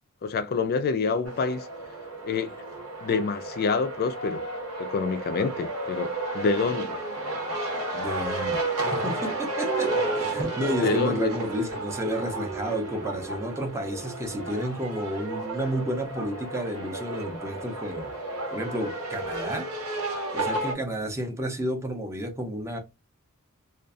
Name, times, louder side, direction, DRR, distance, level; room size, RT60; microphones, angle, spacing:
voice 1, 0.2-1.7 2.2-2.5 3.0-4.5 4.8-7.0 10.8-11.3, left 4 dB, 45° left, 0.4 m, -27 dB
sound 1, 1.2-20.7, right 2 dB, 70° right, 0.9 m, -32 dB
voice 2, 7.9-8.6 8.9-18.1 18.5-19.7 20.3-22.8, equal, 15° right, 0.5 m, -31 dB
2.5 x 2.3 x 2.3 m
head